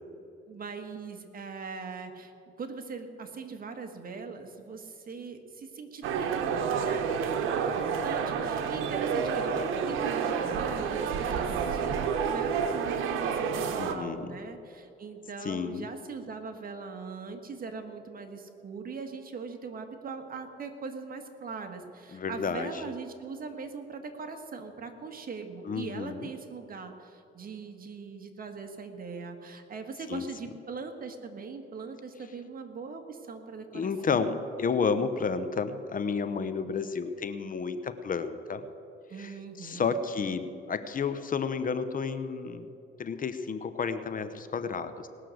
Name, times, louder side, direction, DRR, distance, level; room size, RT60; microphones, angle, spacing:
voice 1, 0.5-34.3 39.1-39.9, right 4 dB, 45° right, 5 dB, 1.7 m, -41 dB
sound 1, 6.0-13.9, right 6 dB, 90° right, 1.0 m, -29 dB
voice 2, 13.8-14.3 15.4-15.9 22.1-22.8 25.6-26.3 30.1-30.3 33.7-38.6 39.2-42.7 43.0-45.1, left 5 dB, 45° left, 11 dB, 0.9 m, -31 dB
19.5 x 6.5 x 7.7 m, 2.9 s
cardioid pair, 90°, 20 cm